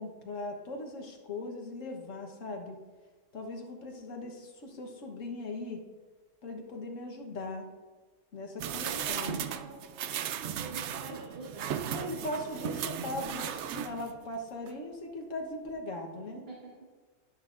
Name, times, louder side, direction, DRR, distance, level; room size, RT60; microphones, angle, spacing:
voice 1, 0.0-2.8 3.3-5.8 6.4-7.7 8.3-9.4 11.9-16.4, left 2 dB, 70° left, 2 dB, 1.6 m, -39 dB
sound 1, 8.6-14.3 14.7-14.8, right 9 dB, 65° right, 0.8 m, -36 dB
voice 2, 8.8-9.8 10.6-13.0 16.5-16.7, right 1 dB, 45° right, -4 dB, 1.7 m, -46 dB
11.0 x 10.0 x 2.5 m, 1.4 s
omnidirectional pair, 1.4 m